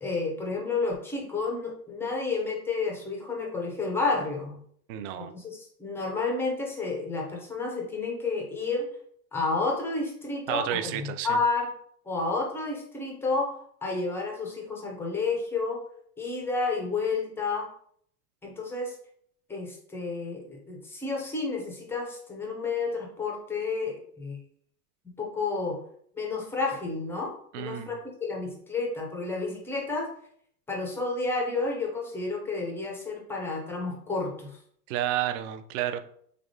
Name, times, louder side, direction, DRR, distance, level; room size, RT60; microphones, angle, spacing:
voice 1, 0.0-4.6 5.2-8.9 9.3-11.7 12.1-15.8 16.2-17.7 18.4-18.9 19.5-24.4 25.0-25.8 26.2-30.1 30.7-34.6, left 3 dB, 5° left, -1 dB, 0.3 m, -31 dB
voice 2, 4.9-5.3 10.5-11.4 27.5-27.9 34.9-36.0, right 11 dB, 55° right, 10 dB, 0.5 m, -30 dB
3.4 x 3.2 x 2.6 m, 0.64 s
hypercardioid pair, 110°, 47 cm